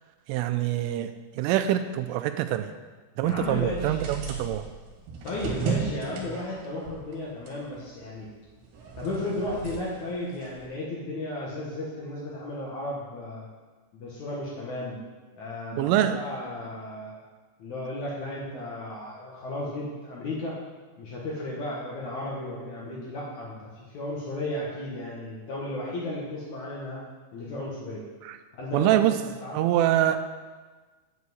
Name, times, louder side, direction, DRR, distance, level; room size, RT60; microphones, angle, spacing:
voice 1, 0.3-2.7 3.2-4.7 15.7-16.2 28.2-28.4 28.7-29.1 29.5-30.2, right 12 dB, 85° right, 9 dB, 3.1 m, -25 dB
voice 2, 3.2-4.0 5.2-8.3 9.0-13.5 13.9-15.0 15.4-17.2 17.6-20.5 21.0-27.0 27.3-28.0 28.5-29.6, left 1 dB, 75° left, -5 dB, 1.7 m, -34 dB
sound 1, 3.3-8.2 8.6-10.6, right 5 dB, 70° right, 3.6 m, -35 dB
8.5 x 5.7 x 7.8 m, 1.4 s
omnidirectional pair, 5.6 m